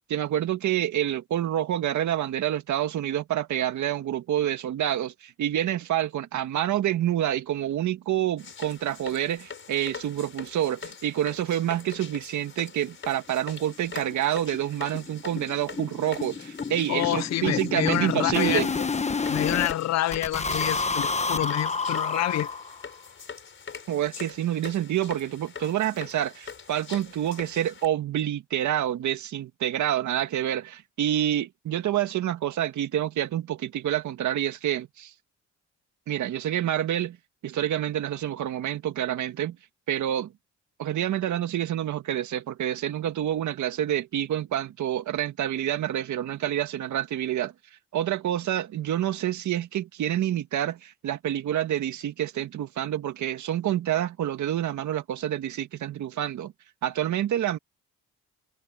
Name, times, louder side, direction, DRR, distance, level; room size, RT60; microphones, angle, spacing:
voice 1, 0.1-18.7 23.9-35.1 36.1-37.2 37.4-39.6 39.9-40.3 40.8-47.5 47.9-56.5 56.8-57.6, right 11 dB, 70° right, 2.0 m, -28 dB
sound 1, 8.4-27.9, left 6 dB, 40° left, 5.4 m, -43 dB
sound 2, 12.9-13.0 13.3-13.4 13.7-13.8 14.1-14.3 14.5-19.7 20.1-22.9, left 4 dB, 20° left, 1.2 m, -29 dB
voice 2, 16.9-18.6 19.3-22.5, left 14 dB, 65° left, 0.5 m, -27 dB
cardioid pair, 90°, 30 cm